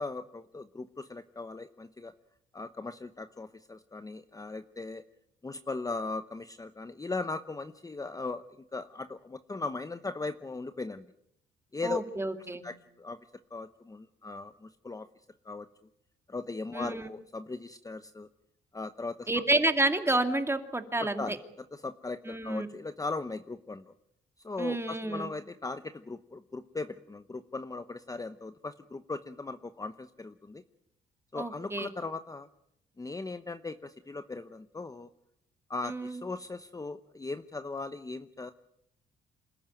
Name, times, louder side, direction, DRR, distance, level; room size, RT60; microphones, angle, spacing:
voice 1, 0.0-2.1 2.5-5.0 5.4-8.4 8.7-11.0 11.7-12.0 12.6-13.2 13.5-15.1 15.4-15.7 16.3-18.3 18.7-19.3 21.0-21.4 21.7-23.9 24.4-30.6 31.3-32.5 33.0-35.1 35.7-38.5, left 3 dB, 15° left, 10 dB, 0.9 m, -38 dB
voice 2, 11.8-12.6 16.7-17.1 19.3-21.4 22.3-22.7 24.6-25.3 31.3-31.9 35.8-36.2, right 2 dB, 15° right, 6 dB, 2.6 m, -29 dB
27.5 x 14.0 x 9.3 m, 0.79 s
cardioid pair, 90°, 20 cm